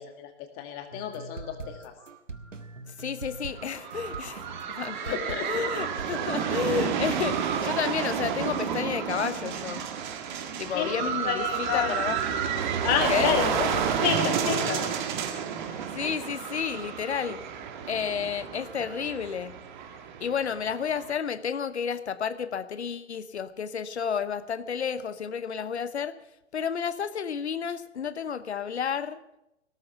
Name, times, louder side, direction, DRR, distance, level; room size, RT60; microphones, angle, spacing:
voice 1, 0.0-1.9 5.0-5.7 10.7-12.0 12.8-14.9, left 9 dB, 25° left, 6 dB, 1.9 m, -30 dB
sound 1, 0.9-6.8, right 3 dB, 80° right, 1.4 m, -43 dB
voice 2, 2.9-5.1 5.4-9.8 10.6-12.5 13.1-13.4 15.9-17.4 17.9-19.6 20.2-26.2 26.5-29.2, left 7 dB, 60° left, 15 dB, 1.0 m, -31 dB
sound 2, 3.5-21.1, right 7 dB, 40° right, 1.8 m, -31 dB
17.5 x 13.0 x 5.8 m, 0.88 s
figure-of-eight pair, 120°, 37 cm